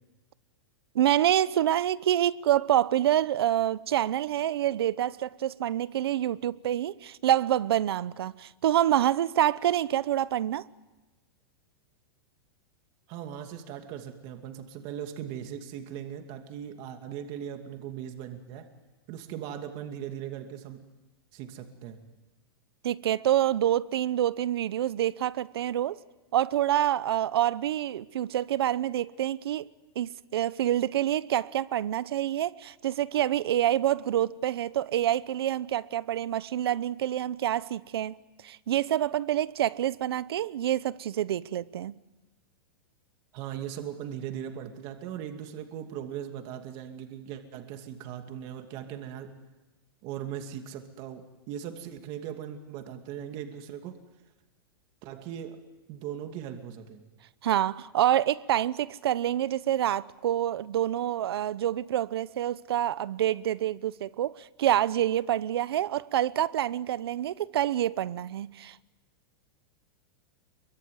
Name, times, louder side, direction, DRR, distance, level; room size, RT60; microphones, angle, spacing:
voice 1, 0.9-10.7 22.8-26.0 26.3-29.6 30.0-38.2 38.4-41.9 57.4-68.8, right 12 dB, 85° right, 0.9 m, -27 dB
voice 2, 13.1-18.7 19.1-20.8 21.3-22.0 43.3-49.4 50.0-54.0 55.0-55.6 55.9-57.0, right 9 dB, 40° right, 2.6 m, -39 dB
26.5 x 23.5 x 9.5 m
supercardioid pair, 155°, 13 cm